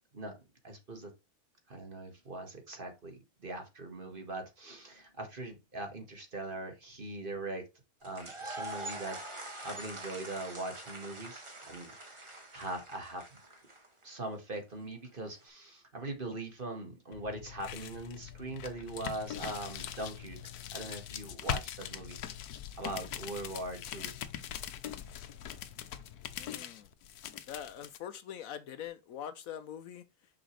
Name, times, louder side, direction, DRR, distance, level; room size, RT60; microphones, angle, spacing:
voice 1, 0.6-1.1 1.7-7.6 8.0-9.2 9.6-13.4 14.0-20.4 20.7-22.2 22.8-24.1, right 2 dB, 35° right, 1.7 m, -41 dB
sound 1, 8.0-14.0, right 2 dB, 20° right, 1.3 m, -44 dB
sound 2, 17.1-28.0, left 10 dB, 85° left, 1.2 m, -42 dB
voice 2, 26.4-26.9 27.5-30.0, left 9 dB, 70° left, 1.0 m, -43 dB
6.3 x 5.9 x 3.2 m
omnidirectional pair, 1.6 m